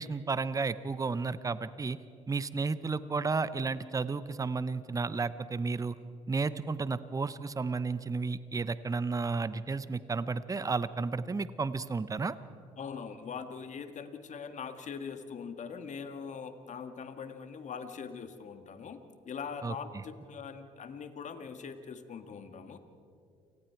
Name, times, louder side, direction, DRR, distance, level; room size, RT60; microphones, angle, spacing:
voice 1, 0.0-2.0 2.3-6.0 6.3-12.4 19.6-19.7, right 4 dB, 20° right, 15 dB, 0.8 m, -32 dB
voice 2, 12.8-19.0 19.2-22.8, left 6 dB, 45° left, 8 dB, 1.8 m, -42 dB
29.0 x 19.5 x 4.7 m, 2.4 s
hypercardioid pair, 65°, 16 cm